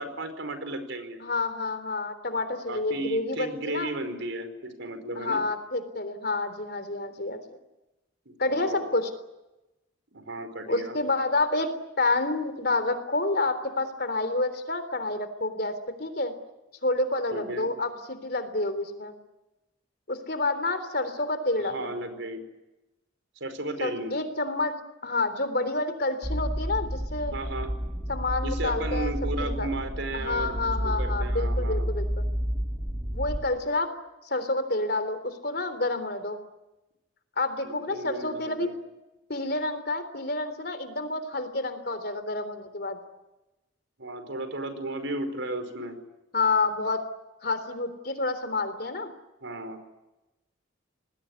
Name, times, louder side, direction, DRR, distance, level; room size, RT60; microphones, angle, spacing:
voice 1, 0.0-1.2 2.7-5.4 8.2-8.9 10.1-10.9 17.3-17.7 21.6-22.4 23.4-24.1 27.3-27.7 28.4-31.8 37.6-38.7 44.0-46.0 49.4-49.8, right 2 dB, 70° right, 8 dB, 5.0 m, -34 dB
voice 2, 1.2-3.9 5.2-7.6 8.4-9.1 10.7-11.7 12.0-16.3 16.8-19.2 20.1-21.9 23.8-24.7 25.0-27.3 28.1-29.7 30.1-32.2 33.1-33.9 34.2-36.4 37.4-38.7 39.3-43.0 46.3-47.1 47.4-49.1, left 2 dB, 50° left, 11 dB, 3.6 m, -29 dB
sound 1, 26.2-33.5, equal, 20° right, 2.3 m, -30 dB
28.0 x 20.5 x 9.8 m, 0.99 s
head